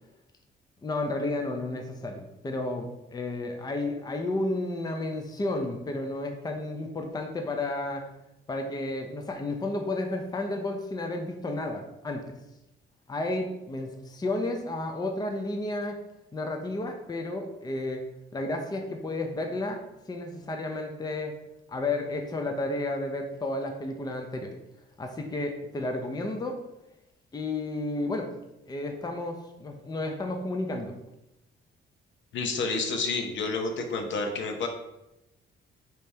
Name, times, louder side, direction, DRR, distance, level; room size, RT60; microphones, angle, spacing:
voice 1, 0.8-8.1 8.5-12.3 13.1-16.0 16.3-18.0 18.3-19.8 20.1-21.4 21.7-24.6 25.0-26.6 27.3-28.3 28.7-30.9, left 2 dB, 20° left, 4 dB, 0.6 m, -32 dB
voice 2, 32.3-34.7, left 3 dB, 70° left, 4 dB, 0.8 m, -29 dB
5.0 x 2.9 x 3.3 m, 0.90 s
cardioid pair, 90°, 20 cm